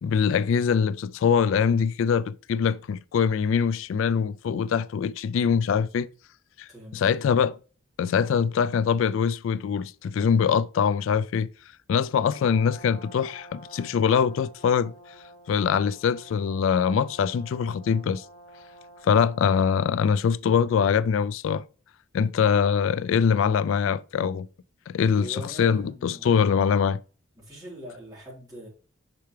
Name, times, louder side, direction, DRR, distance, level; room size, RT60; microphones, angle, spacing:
voice 1, 0.0-6.1 6.6-7.6 8.0-11.5 11.9-14.9 15.5-18.2 19.0-21.7 22.1-24.5 24.9-27.0, left 7 dB, 80° left, 0.3 m, -23 dB
voice 2, 6.7-7.2 25.2-26.4 27.4-28.7, equal, 20° right, 3.7 m, -42 dB
Brass instrument, 12.0-19.7, right 1 dB, 40° left, 3.3 m, -49 dB
6.8 x 5.6 x 3.2 m
head